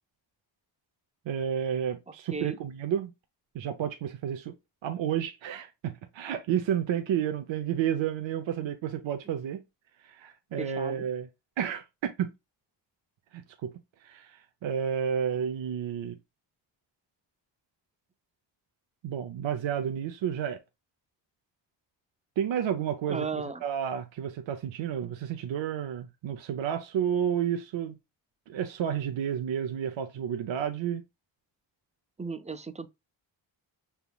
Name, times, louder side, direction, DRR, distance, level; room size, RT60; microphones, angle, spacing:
voice 1, 1.3-3.1 3.5-4.5 4.8-9.6 10.0-11.3 11.6-12.3 13.3-13.7 14.0-16.2 19.0-20.6 22.4-28.0 28.5-31.0, right 9 dB, 80° right, 0.7 m, -31 dB
voice 2, 10.6-11.0 23.1-23.6 32.2-32.9, right 4 dB, 15° right, 0.5 m, -35 dB
5.8 x 3.5 x 2.2 m
cardioid pair, 70°, 45 cm